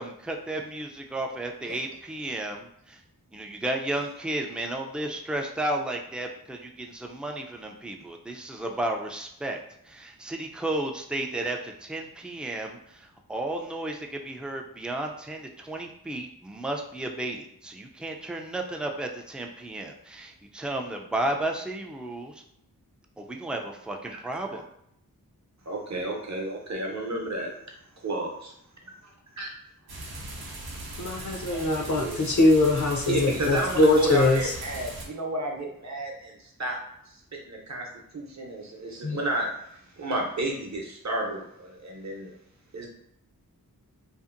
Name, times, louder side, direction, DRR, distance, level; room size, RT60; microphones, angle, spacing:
voice 1, 0.0-3.0 3.3-22.4 23.2-24.6, right 1 dB, 5° right, 2 dB, 0.3 m, -33 dB
voice 2, 25.7-27.5 28.0-28.3 29.4-29.5 31.4-31.6 31.9-32.2 33.1-36.8 37.1-37.9 38.1-39.5 39.9-42.3 42.7-42.9, right 1 dB, 50° right, 0 dB, 0.7 m, -31 dB
sound 1, 29.9-35.1, right 2 dB, 90° right, 0.6 m, -39 dB
voice 3, 31.0-34.5 39.0-39.2, left 2 dB, 55° left, 1 dB, 0.6 m, -22 dB
2.7 x 2.5 x 2.5 m, 0.74 s
wide cardioid pair, 45°, 36 cm